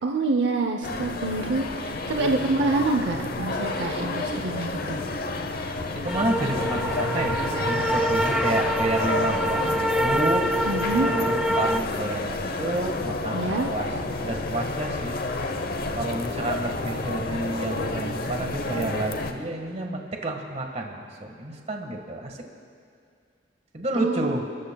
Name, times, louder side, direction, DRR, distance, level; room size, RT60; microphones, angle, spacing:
voice 1, 0.0-5.1 10.7-11.1 13.3-13.7 23.9-24.3, right 3 dB, 75° right, 3 dB, 0.7 m, -26 dB
sound 1, 0.8-19.3, left 2 dB, 55° left, 0.8 m, -30 dB
voice 2, 5.9-13.9 14.2-15.2 15.9-22.4 23.7-24.4, right 1 dB, 40° right, 2 dB, 1.6 m, -30 dB
sound 2, 6.1-11.8, right 1 dB, 5° right, 0.3 m, -26 dB
29.5 x 13.5 x 2.3 m, 2.3 s
head